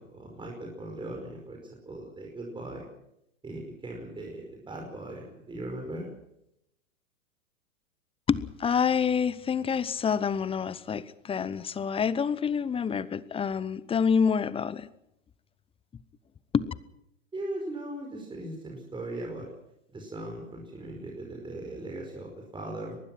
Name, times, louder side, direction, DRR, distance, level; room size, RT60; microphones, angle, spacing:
voice 1, 0.0-2.9 3.4-6.1 17.3-19.5 19.9-23.0, right 1 dB, 10° right, 1 dB, 5.1 m, -39 dB
voice 2, 8.3-14.9 16.5-16.6, left 6 dB, 15° left, 18 dB, 0.9 m, -27 dB
24.0 x 20.0 x 6.0 m, 0.80 s
hypercardioid pair, 105°, 40 cm